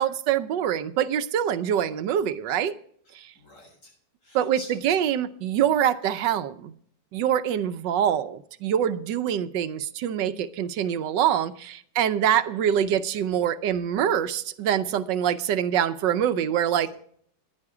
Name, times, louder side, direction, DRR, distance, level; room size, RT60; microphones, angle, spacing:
voice 1, 0.0-2.7 3.1-3.3 4.3-6.7 7.1-16.9, right 9 dB, 90° right, 1.5 m, -25 dB
voice 2, 3.0-3.9 4.2-4.8, left 1 dB, 75° left, 8.3 m, -46 dB
14.5 x 10.5 x 4.8 m
omnidirectional pair, 1.9 m